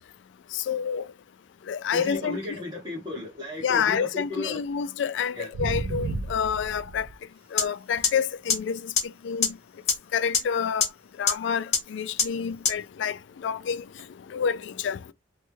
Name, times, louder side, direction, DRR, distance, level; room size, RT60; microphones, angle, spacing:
voice 1, 0.5-1.0 1.7-2.4 3.6-7.1 7.5-8.9 9.2-9.5 10.1-10.9 11.2-13.8 14.3-15.0, left 7 dB, 85° left, 0.3 m, -28 dB
voice 2, 1.9-4.6 5.3-5.5, left 2 dB, 20° right, 1.0 m, -35 dB
sound 1, 5.5-7.1 8.0-8.2 14.0-14.1, right 2 dB, 90° right, 0.4 m, -32 dB
sound 2, 7.6-7.7 8.0-8.1 8.5-8.6 9.0-9.1 9.4-9.5 9.9-10.0 10.3-10.4 10.8-10.9 11.3-11.4 11.7-11.8 12.2-12.3 12.6-12.7, left 6 dB, 35° left, 0.8 m, -21 dB
3.1 x 2.2 x 3.1 m
head